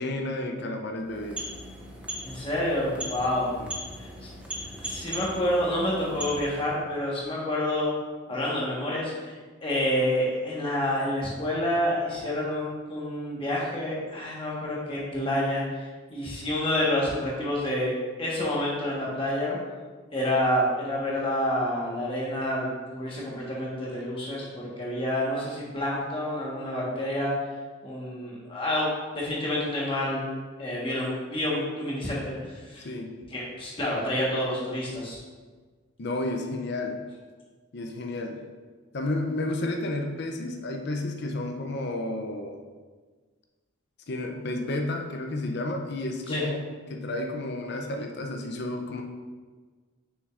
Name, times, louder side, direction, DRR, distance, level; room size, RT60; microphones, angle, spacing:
voice 1, 0.0-1.4 32.8-33.1 36.0-37.0 37.7-38.4 38.9-42.6 44.1-46.6 46.9-49.0, left 2 dB, 50° left, 3 dB, 0.5 m, -31 dB
sound 1, 1.0-6.8, right 1 dB, 5° right, 0.6 m, -39 dB
voice 2, 2.2-3.6 4.0-4.3 4.8-7.9 8.3-9.3 9.6-15.8 16.1-17.9 18.2-19.6 20.1-27.3 27.8-30.2 30.6-32.8 33.3-35.2 46.3-46.4, left 1 dB, 25° left, -5 dB, 1.4 m, -28 dB
6.3 x 6.2 x 2.5 m, 1.4 s
head